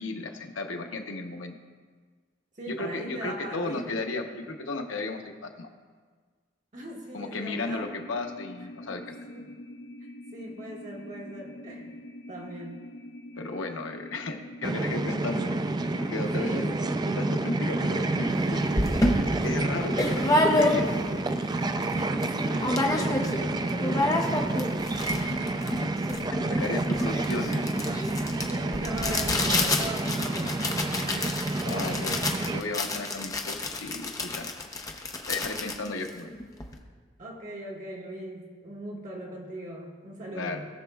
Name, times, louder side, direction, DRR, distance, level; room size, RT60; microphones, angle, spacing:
voice 1, 0.0-1.5 2.7-5.7 7.1-9.1 13.4-15.7 16.0-16.6 17.1-18.8 19.2-21.1 25.4-25.5 26.3-27.7 31.6-34.5 35.3-36.3 40.3-40.6, left 2 dB, 85° left, 4 dB, 0.8 m, -34 dB
voice 2, 2.5-3.9 6.7-7.8 9.3-9.5 10.0-12.0 12.3-12.8 16.3-17.0 17.6-17.8 21.9-25.3 26.6-26.8 28.3-30.7 31.1-31.3 37.2-40.6, right 1 dB, 40° right, -2 dB, 1.4 m, -39 dB
sound 1, 7.7-24.0, left 1 dB, 60° left, 0.6 m, -44 dB
sound 2, 14.6-32.6, right 2 dB, 20° right, 0.3 m, -29 dB
sound 3, 18.3-18.4 18.8-21.1 21.6-21.7 21.8-22.3 22.6-23.4 23.7-36.8, left 2 dB, 20° left, 0.7 m, -28 dB
18.0 x 6.1 x 2.3 m, 1.5 s
head